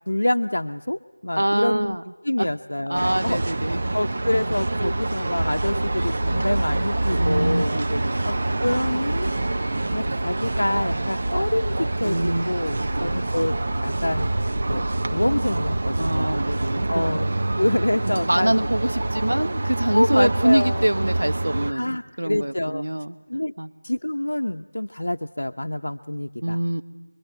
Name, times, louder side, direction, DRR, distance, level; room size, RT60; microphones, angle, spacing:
voice 1, 0.1-2.0 2.2-3.4 3.9-7.7 8.2-8.3 8.6-9.3 9.9-14.3 14.7-14.8 15.1-16.4 16.9-18.5 19.3-19.4 19.9-20.9 21.7-22.8 23.3-23.5 23.8-26.6, left 1 dB, 80° left, 6 dB, 0.7 m, -26 dB
voice 2, 1.4-2.0 2.4-2.5 2.9-3.8 7.1-8.3 12.0-12.5 12.9-13.3 16.0-17.0 18.0-23.2 23.6-23.7 26.4-26.8, right 1 dB, 90° right, 10 dB, 1.3 m, -25 dB
sound 1, 2.9-21.7, right 2 dB, 30° right, 0.8 m, -26 dB
26.0 x 22.5 x 7.9 m, 1.3 s
figure-of-eight pair, 175°, 0 cm